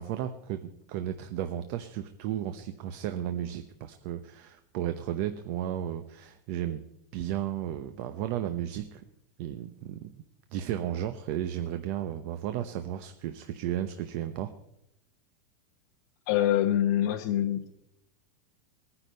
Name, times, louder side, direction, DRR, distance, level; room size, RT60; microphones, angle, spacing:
voice 1, 0.0-6.8 7.1-9.0 9.4-10.2 10.5-14.5, right 11 dB, 50° right, 8 dB, 0.8 m, -34 dB
voice 2, 16.3-17.7, left 12 dB, 60° left, 4 dB, 1.0 m, -25 dB
19.5 x 9.9 x 5.5 m, 0.82 s
supercardioid pair, 150°, 11 cm